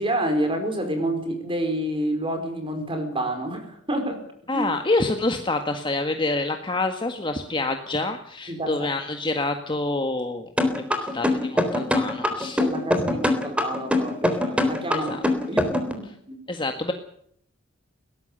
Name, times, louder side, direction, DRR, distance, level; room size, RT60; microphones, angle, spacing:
voice 1, 0.0-4.2 4.5-4.7 8.5-8.9 12.6-15.2 15.5-16.4, right 1 dB, 25° right, 5 dB, 4.8 m, -28 dB
voice 2, 4.5-10.5 10.9-12.6 13.0-13.1 14.9-15.2 16.5-16.9, left 2 dB, 25° left, 5 dB, 1.8 m, -27 dB
sound 1, 10.6-15.9, left 1 dB, 5° right, 3.7 m, -22 dB
21.5 x 18.0 x 6.8 m, 0.66 s
head